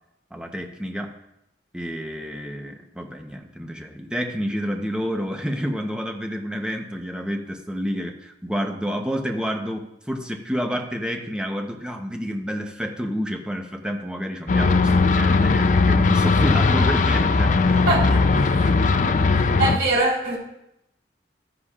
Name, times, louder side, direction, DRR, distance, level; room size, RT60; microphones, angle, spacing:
voice 1, 0.3-1.1 1.7-17.9 18.3-18.7 19.4-19.5, equal, 5° right, 3 dB, 0.9 m, -29 dB
sound 1, 14.5-19.8, left 4 dB, 45° left, 0.5 m, -18 dB
voice 2, 17.9-18.3 18.6-18.7 19.3-20.4, right 2 dB, 60° right, -7 dB, 4.1 m, -23 dB
13.0 x 9.9 x 2.5 m, 0.82 s
head